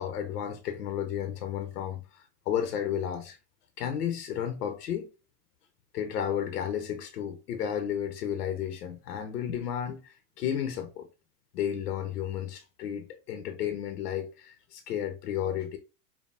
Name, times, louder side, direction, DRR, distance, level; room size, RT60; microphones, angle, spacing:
voice 1, 0.0-3.4 3.8-5.1 5.9-11.1 11.5-15.8, left 9 dB, 75° left, 0.8 m, -33 dB
5.3 x 2.3 x 2.6 m
hypercardioid pair, 90°, 47 cm